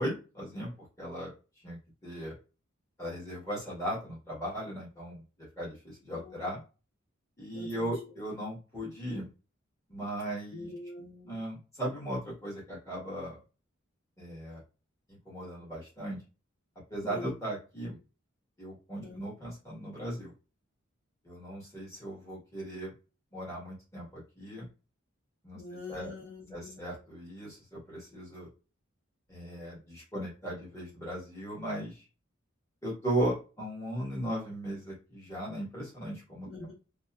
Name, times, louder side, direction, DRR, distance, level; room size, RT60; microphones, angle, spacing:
voice 1, 0.0-1.3 1.6-2.3 3.0-5.2 5.6-6.6 7.4-9.3 9.9-10.7 11.2-13.4 14.2-14.6 15.2-16.2 16.9-18.0 18.6-20.3 21.2-22.9 23.3-24.6 25.4-25.6 25.9-26.1 26.5-28.5 29.3-32.0 32.8-36.5, right 1 dB, 15° left, -6 dB, 1.4 m, -37 dB
voice 2, 6.1-6.6 7.5-7.9 10.5-11.4 17.0-17.3 19.0-19.2 25.5-26.9 36.4-36.7, left 2 dB, 60° left, -3 dB, 0.8 m, -44 dB
2.8 x 2.2 x 2.4 m, 0.32 s
head